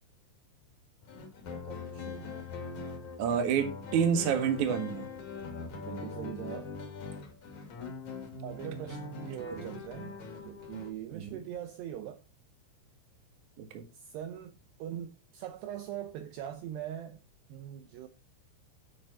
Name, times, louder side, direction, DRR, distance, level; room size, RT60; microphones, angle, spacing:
sound 1, 1.0-10.9, left 4 dB, 45° left, 3.0 m, -42 dB
voice 1, 1.5-2.5 5.7-6.7 8.4-10.2 10.4-12.2 13.9-17.2 17.5-18.1, right 10 dB, 80° right, 2.5 m, -42 dB
voice 2, 3.2-5.1 9.5-9.6 11.1-11.4 13.6-13.8, right 7 dB, 55° right, 2.3 m, -29 dB
13.5 x 6.6 x 4.2 m
omnidirectional pair, 5.6 m